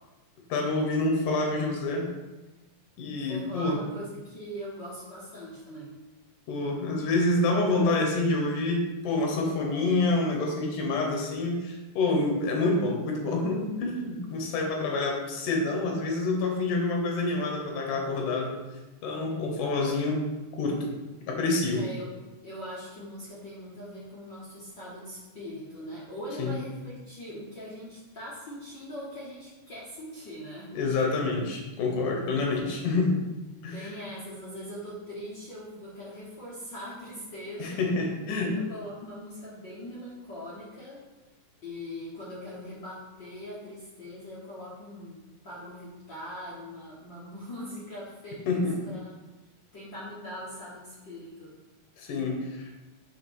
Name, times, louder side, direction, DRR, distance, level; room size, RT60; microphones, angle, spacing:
voice 1, 0.5-2.1 3.0-3.8 6.5-18.6 19.0-20.3 20.6-20.9 21.3-21.8 26.4-26.6 30.7-33.2 33.6-33.9 37.6-38.5 48.5-48.8 52.0-52.6, left 2 dB, 85° left, 0 dB, 2.7 m, -27 dB
voice 2, 3.1-6.0 21.7-22.1 22.4-30.8 33.7-37.8 38.4-41.0 41.6-49.1 49.7-51.6, equal, 50° left, -7 dB, 1.5 m, -41 dB
8.3 x 3.2 x 6.2 m, 1.1 s
omnidirectional pair, 3.5 m